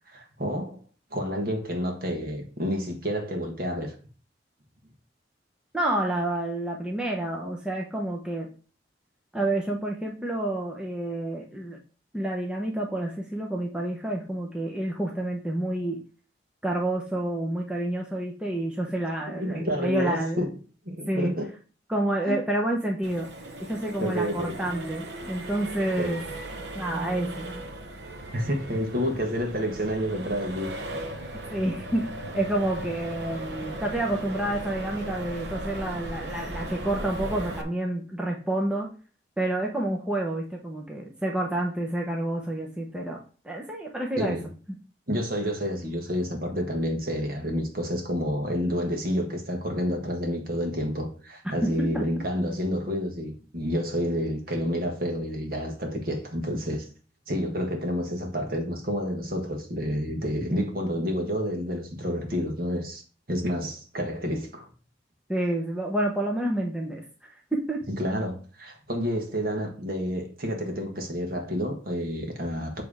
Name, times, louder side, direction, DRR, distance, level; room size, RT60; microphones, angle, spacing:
voice 1, 0.1-0.8 1.1-3.9 19.3-20.5 20.8-21.5 22.2-22.4 24.0-24.6 26.0-26.2 28.3-30.7 44.2-44.5 45.1-56.9 57.3-63.0 63.3-64.7 67.9-72.8, equal, 50° right, 1.5 m, -29 dB
voice 2, 5.7-8.5 9.3-11.8 12.1-16.0 16.6-20.5 21.1-21.3 21.9-23.3 23.6-26.2 26.7-27.6 31.5-38.9 39.4-43.2 43.4-44.4 51.9-52.0 65.3-67.0 67.5-67.8, right 1 dB, 5° right, 0.8 m, -29 dB
Accelerating revving vroom, 23.0-37.6, right 1 dB, 70° right, 0.9 m, -37 dB
7.5 x 3.4 x 4.9 m
head